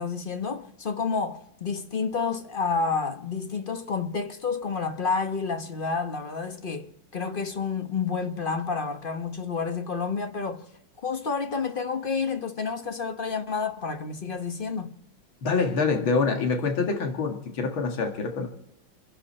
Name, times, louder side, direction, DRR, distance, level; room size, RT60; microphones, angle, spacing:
voice 1, 0.0-10.7 11.0-14.9, left 5 dB, 35° left, 0.9 m, -29 dB
voice 2, 15.4-18.5, left 4 dB, 90° left, 2.5 m, -25 dB
28.0 x 11.0 x 4.3 m
omnidirectional pair, 2.1 m